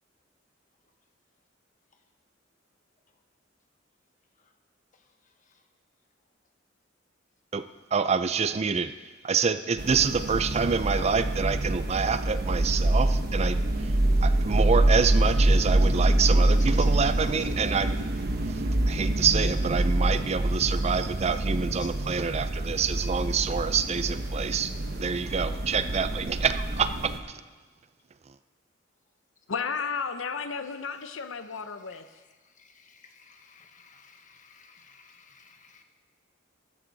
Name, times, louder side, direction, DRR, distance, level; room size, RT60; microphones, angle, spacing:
voice 1, 7.9-8.9 9.2-13.9 14.2-17.9 18.5-27.4 28.3-28.4, right 6 dB, 35° right, 12 dB, 0.4 m, -27 dB
sound 1, 9.8-27.2, right 1 dB, 55° right, 1.1 m, -26 dB
voice 2, 29.5-32.1, left 5 dB, 85° left, 10 dB, 0.7 m, -33 dB
voice 3, 32.6-35.8, left 6 dB, 40° left, 5 dB, 1.2 m, -53 dB
14.5 x 13.5 x 4.0 m, 1.4 s
head